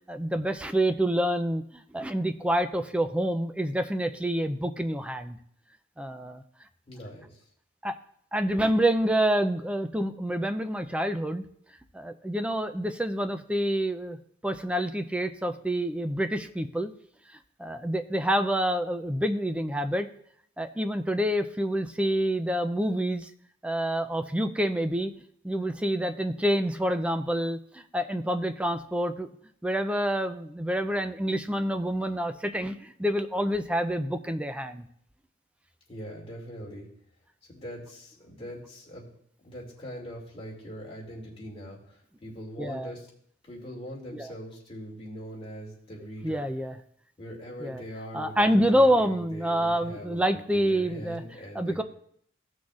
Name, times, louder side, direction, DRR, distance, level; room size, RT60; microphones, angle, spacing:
voice 1, 0.1-5.4 6.0-6.4 7.8-8.0 8.3-11.4 11.9-14.2 14.4-16.9 17.6-20.1 20.6-23.3 23.6-25.1 25.4-29.3 29.6-34.9 42.6-42.9 44.1-44.3 46.2-46.8 47.6-47.8 48.1-51.2 51.5-51.8, equal, 5° right, 8 dB, 0.4 m, -27 dB
voice 2, 6.9-7.4 35.9-36.9 37.5-39.1 39.4-43.1 43.4-46.5 47.2-51.8, equal, 30° left, -3 dB, 2.4 m, -42 dB
15.5 x 6.3 x 2.4 m, 0.66 s
head